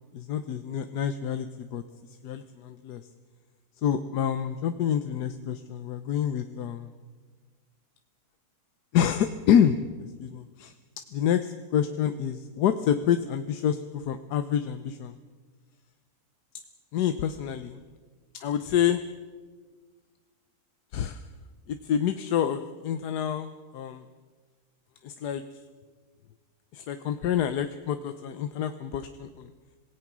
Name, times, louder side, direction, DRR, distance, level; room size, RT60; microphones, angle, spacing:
voice 1, 0.1-1.8 2.2-3.0 3.8-6.9 8.9-10.7 11.1-15.2 16.9-17.8 18.3-19.0 20.9-21.2 21.7-24.0 25.0-25.4 26.7-29.5, left 9 dB, 90° left, 9 dB, 1.4 m, -27 dB
26.0 x 17.5 x 6.1 m, 1.4 s
omnidirectional pair, 1.7 m